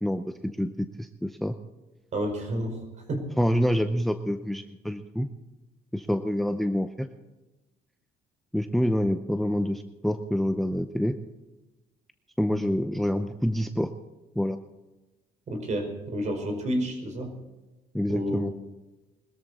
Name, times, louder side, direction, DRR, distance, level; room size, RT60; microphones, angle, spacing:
voice 1, 0.0-1.6 3.4-5.3 5.9-7.1 8.5-11.2 12.4-13.9 14.4-14.6 17.9-18.5, equal, ahead, 9 dB, 0.7 m, -27 dB
voice 2, 2.1-2.8 3.1-3.2 15.5-17.3 18.1-18.4, right 1 dB, 45° right, 4 dB, 4.9 m, -30 dB
21.5 x 13.5 x 4.2 m, 1.1 s
cardioid pair, 110°, 17 cm